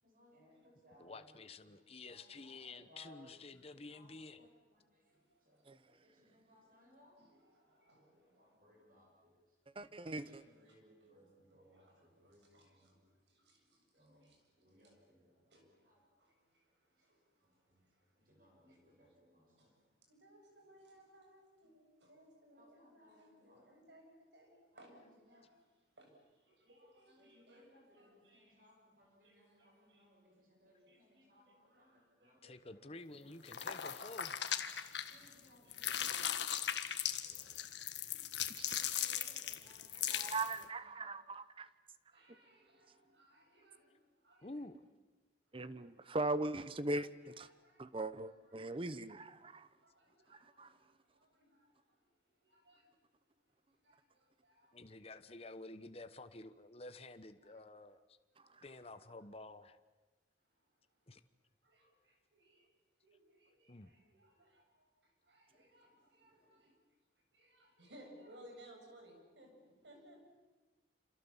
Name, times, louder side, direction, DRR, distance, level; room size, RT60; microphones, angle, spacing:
voice 1, 0.0-7.2 7.7-9.3 10.1-13.0 13.9-14.3 14.6-16.0 17.0-17.1 17.4-17.8 18.2-19.7 22.6-23.7 24.7-25.5 27.1-34.5 35.1-36.6 37.2-37.5 38.6-41.2, equal, 50° right, -1 dB, 7.0 m, -66 dB
voice 2, 1.0-4.4 32.4-34.4 44.4-44.8 54.7-58.0 58.6-59.8 61.1-61.2 63.7-63.9, left 2 dB, 35° left, 11 dB, 1.1 m, -51 dB
voice 3, 5.0-6.3 7.2-8.6 9.7-15.0 15.5-19.2 19.6-25.7 26.0-30.1 30.9-32.4 35.6-36.4 37.2-38.4 40.6-41.1 42.1-44.6 45.6-46.2 47.3-47.9 48.3-48.8 49.8-52.0 52.2-52.9 53.7-54.8 57.4-57.6 58.4-58.6 61.6-62.7 63.0-66.7 67.3-70.4, right 1 dB, 80° right, 2 dB, 7.7 m, -65 dB
voice 4, 9.8-10.4 38.6-38.9 40.1-41.7 45.5-47.5 47.8-49.7 50.6-50.7, right 2 dB, 30° right, 14 dB, 0.9 m, -40 dB
sound 1, 33.4-35.4 35.7-40.6, left 10 dB, 85° left, 1.7 m, -39 dB
27.5 x 27.0 x 7.3 m, 1.2 s
head